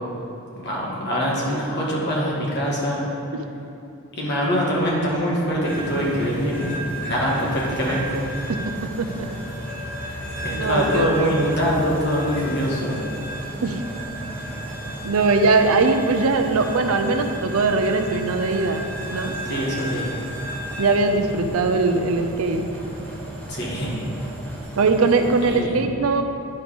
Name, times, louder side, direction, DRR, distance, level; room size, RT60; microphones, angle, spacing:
voice 1, 0.5-3.0 4.1-8.2 10.4-13.0 19.4-20.1 23.5-23.9 25.5-25.8, equal, 50° left, -5 dB, 1.5 m, -24 dB
sound 1, 5.6-25.6, right 1 dB, 10° left, 1.7 m, -33 dB
voice 2, 10.5-11.3 13.6-13.8 15.0-18.8 19.1-19.3 20.8-22.7 24.8-26.2, right 3 dB, 75° right, 6 dB, 0.5 m, -20 dB
10.5 x 3.5 x 5.0 m, 2.7 s
head